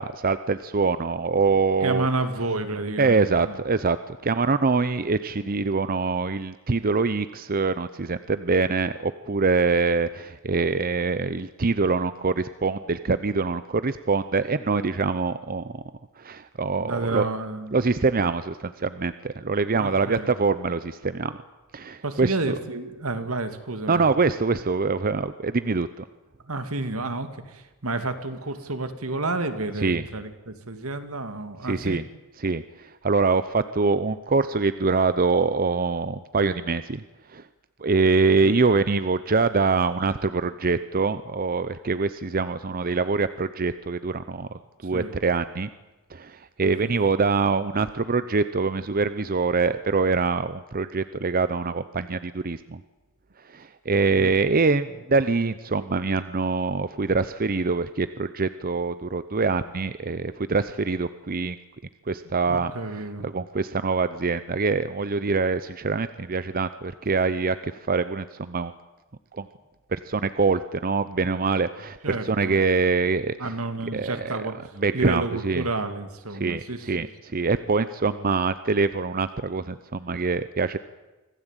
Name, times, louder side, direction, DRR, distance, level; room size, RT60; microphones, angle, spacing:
voice 1, 0.0-2.1 3.0-15.8 16.2-17.3 17.7-21.3 21.7-22.3 23.9-26.0 29.8-30.0 31.6-32.0 32.4-37.0 37.3-37.5 37.8-44.5 44.8-45.7 46.1-52.8 53.5-61.6 62.1-62.7 63.2-68.7 69.3-69.5 69.9-73.4 73.9-74.4 74.8-75.7 76.4-80.8, right 4 dB, 45° right, 13 dB, 0.8 m, -24 dB
voice 2, 1.8-3.6 16.7-17.8 19.8-20.3 22.0-24.1 26.4-32.0 38.3-38.6 44.9-45.1 46.6-46.9 54.1-54.3 62.5-63.3 72.0-72.6 73.4-77.1, right 2 dB, 80° right, 9 dB, 2.4 m, -30 dB
25.5 x 16.5 x 9.1 m, 1.1 s
head